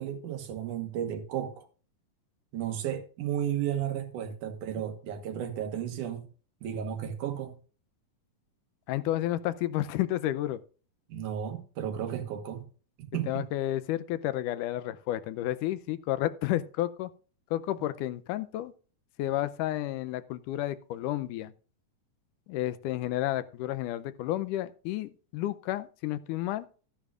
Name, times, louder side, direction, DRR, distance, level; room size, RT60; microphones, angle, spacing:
voice 1, 0.0-1.6 2.5-6.3 6.6-7.6 11.1-12.6 13.0-13.5, right 10 dB, 80° right, 2.8 m, -33 dB
voice 2, 8.9-10.6 13.3-17.1 17.5-18.7 19.2-21.5 22.5-26.7, left 14 dB, 90° left, 2.2 m, -31 dB
14.0 x 10.0 x 2.4 m
omnidirectional pair, 3.6 m